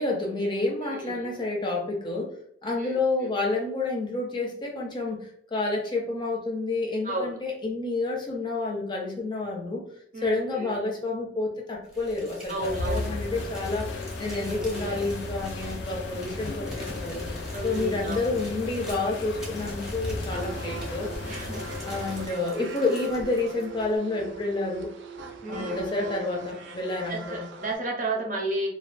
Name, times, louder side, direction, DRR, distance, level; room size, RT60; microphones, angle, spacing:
voice 1, 0.0-2.3 2.6-9.8 10.2-17.2 17.6-21.1 21.9-24.9 25.5-27.4, left 2 dB, 25° left, -1 dB, 0.5 m, -29 dB
voice 2, 0.8-1.4 2.7-3.3 7.0-7.3 10.1-10.8 12.5-13.1 14.3-15.0 17.5-18.3 21.3-21.9 22.2-22.4 25.4-25.9 27.1-28.7, right 1 dB, 45° right, -1 dB, 0.6 m, -33 dB
Crumpling crinkling, 11.9-24.0, equal, 5° right, 0.7 m, -44 dB
sound 1, 12.6-22.3, left 2 dB, 85° left, 0.3 m, -35 dB
sound 2, 20.3-27.8, right 3 dB, 85° right, 0.3 m, -41 dB
2.3 x 2.2 x 2.5 m, 0.68 s
head